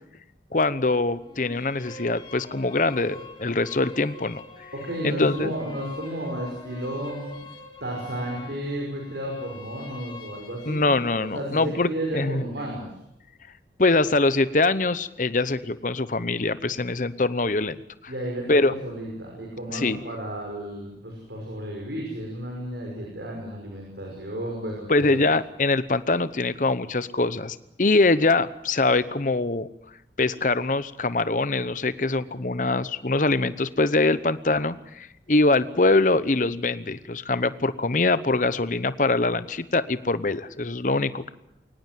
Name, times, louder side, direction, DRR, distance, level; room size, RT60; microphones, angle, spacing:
voice 1, 0.5-4.4 5.0-5.5 10.7-12.4 13.8-17.8 18.0-18.1 18.5-18.7 19.7-20.0 24.9-29.7 30.2-41.3, left 3 dB, 45° left, 14 dB, 0.9 m, -23 dB
sound 1, 1.2-11.2, left 2 dB, 25° left, 2.8 m, -44 dB
voice 2, 4.7-7.4 7.8-12.9 18.1-25.2, right 1 dB, 75° right, 0 dB, 5.6 m, -33 dB
23.0 x 19.0 x 7.6 m, 0.83 s
head